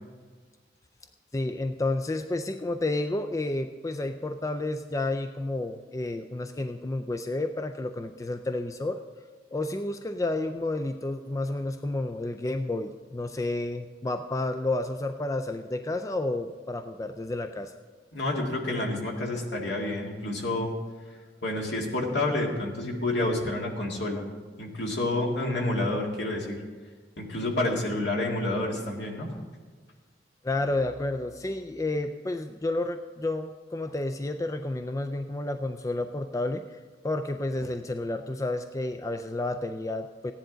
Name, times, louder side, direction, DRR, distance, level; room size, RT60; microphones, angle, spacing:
voice 1, 1.3-9.0 9.5-17.7 29.3-29.4 30.4-36.6 37.0-40.3, left 2 dB, 20° left, 7 dB, 0.3 m, -31 dB
voice 2, 18.1-20.7 21.4-24.2 24.6-26.6 27.2-29.3, left 2 dB, 70° left, -1 dB, 2.1 m, -29 dB
15.0 x 10.0 x 3.9 m, 1.5 s
head